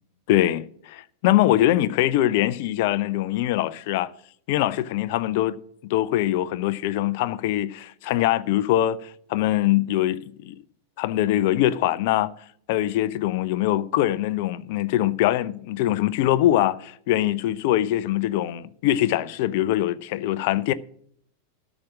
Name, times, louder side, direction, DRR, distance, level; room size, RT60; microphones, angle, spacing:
voice 1, 0.3-4.1 4.5-5.6 5.8-10.6 11.0-12.3 12.7-20.7, left 13 dB, 50° left, 0.5 m, -23 dB
13.0 x 6.1 x 6.1 m
figure-of-eight pair, 90°, 0 cm